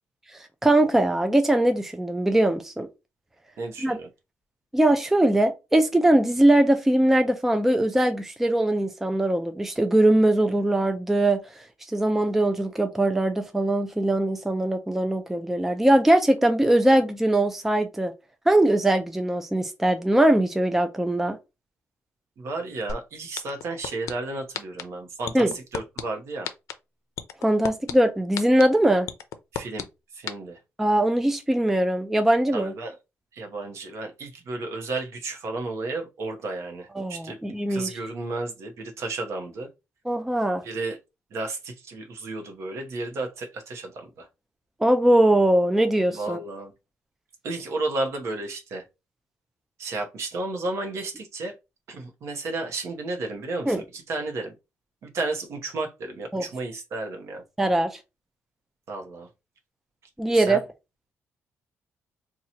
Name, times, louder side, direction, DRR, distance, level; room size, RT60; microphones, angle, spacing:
voice 1, 0.6-2.9 3.8-4.0 4.7-11.4 11.9-18.1 18.5-21.4 25.3-25.5 27.4-29.1 30.8-32.7 36.9-37.9 40.1-40.6 44.8-46.4 53.7-53.8 56.3-56.4 57.6-57.9 60.2-60.6, right 1 dB, 5° right, 0.4 m, -21 dB
voice 2, 3.6-4.1 22.4-25.5 25.7-26.5 29.5-29.8 30.2-30.6 32.5-32.9 33.3-37.4 37.7-39.7 40.6-41.0 41.3-44.2 46.1-46.7 47.4-48.8 49.8-51.5 51.9-54.5 55.0-57.4 58.9-59.3 60.3-60.6, right 2 dB, 60° right, 0.9 m, -32 dB
sound 1, 22.9-23.0 23.4-24.1 24.5-24.8 25.3-26.0 26.4-26.7 27.2-27.9 28.4-28.6 29.1-29.8 30.3-30.4, left 9 dB, 90° left, 0.5 m, -30 dB
2.8 x 2.3 x 4.1 m
cardioid pair, 150°, 5 cm